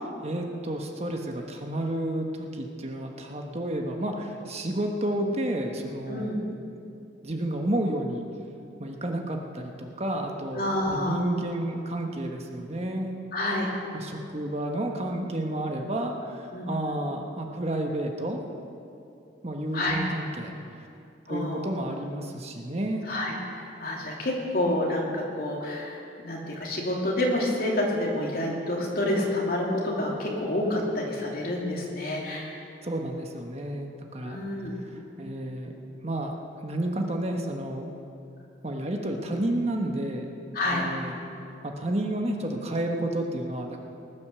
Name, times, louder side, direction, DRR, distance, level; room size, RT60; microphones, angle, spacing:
voice 1, 0.2-6.3 7.2-8.2 8.8-13.1 13.9-18.4 19.4-20.5 21.3-23.0 32.8-34.4 35.2-35.7 36.0-36.3 36.6-37.9 38.6-40.3 40.7-41.2 41.6-43.8, right 1 dB, 35° right, 2 dB, 1.2 m, -31 dB
voice 2, 6.1-6.4 10.5-11.2 13.3-13.7 16.5-16.9 19.7-20.0 21.3-21.7 23.1-32.5 34.2-34.7 40.5-40.8, left 1 dB, 55° left, -2 dB, 2.9 m, -28 dB
19.5 x 9.5 x 6.8 m, 2.6 s
head